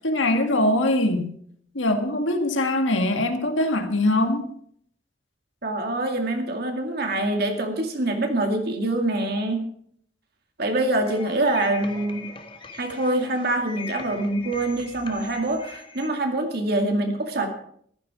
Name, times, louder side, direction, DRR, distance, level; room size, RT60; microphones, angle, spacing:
voice 1, 0.0-1.3 1.7-4.5, left 1 dB, 85° left, 2.0 m, -22 dB
voice 2, 5.6-9.7 10.6-12.3 12.7-17.5, right 2 dB, 55° right, 2.2 m, -25 dB
sound 1, 11.0-16.1, left 4 dB, 25° left, 1.5 m, -41 dB
14.5 x 12.5 x 4.9 m
head